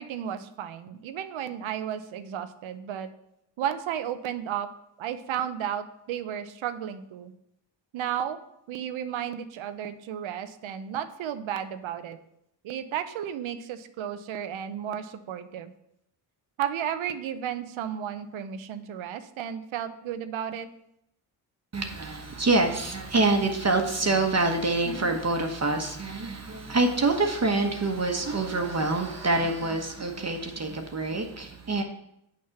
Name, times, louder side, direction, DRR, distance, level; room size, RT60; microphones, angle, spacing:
voice 1, 0.0-3.1 3.6-4.7 5.0-7.3 7.9-8.4 8.7-12.2 12.6-15.7 16.6-20.7, right 9 dB, 80° right, 11 dB, 0.7 m, -33 dB
voice 2, 21.7-31.8, right 2 dB, 35° right, 3 dB, 1.2 m, -26 dB
6.6 x 5.4 x 5.8 m, 0.78 s
cardioid pair, 55°, 46 cm